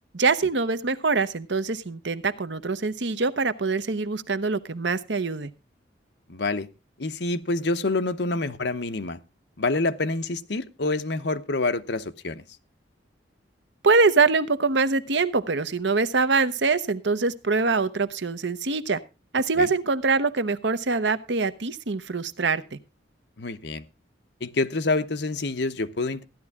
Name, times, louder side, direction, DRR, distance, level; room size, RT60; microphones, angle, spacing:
voice 1, 0.1-5.5 13.8-19.0 19.3-22.8, right 4 dB, 70° right, 14 dB, 0.9 m, -24 dB
voice 2, 6.3-6.7 7.0-9.2 9.6-12.4 19.6-19.7 23.4-23.8 24.4-26.2, left 2 dB, 65° left, 9 dB, 0.9 m, -27 dB
15.0 x 11.0 x 3.6 m, 0.29 s
head